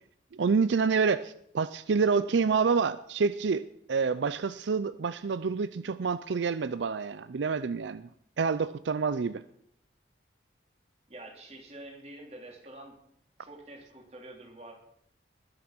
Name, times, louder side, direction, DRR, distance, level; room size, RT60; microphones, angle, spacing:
voice 1, 0.3-8.1 8.4-9.4, right 5 dB, 80° right, 15 dB, 0.5 m, -28 dB
voice 2, 11.1-12.9 13.4-14.7, right 1 dB, 35° right, 0 dB, 3.6 m, -47 dB
20.5 x 8.0 x 6.0 m, 0.71 s
head